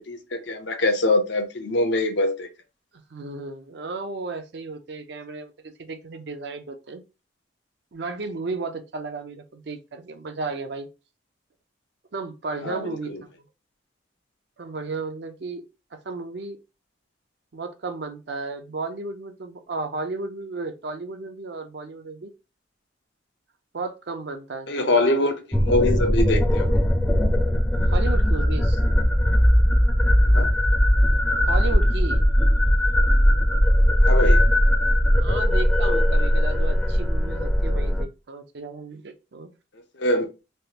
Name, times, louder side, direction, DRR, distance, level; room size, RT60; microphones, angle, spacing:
voice 1, 0.0-2.5 12.6-13.2 24.7-26.8 30.3-30.5 34.0-34.4 40.0-40.3, left 2 dB, 65° left, 0.7 m, -24 dB
voice 2, 3.1-7.0 7.9-10.9 12.1-13.3 14.6-15.6 16.0-16.6 17.5-22.3 23.7-25.3 27.8-28.8 31.4-32.2 35.2-39.5, right 3 dB, 60° right, 0.5 m, -34 dB
sound 1, 25.5-38.0, equal, 5° left, 0.5 m, -19 dB
3.3 x 2.4 x 2.8 m
head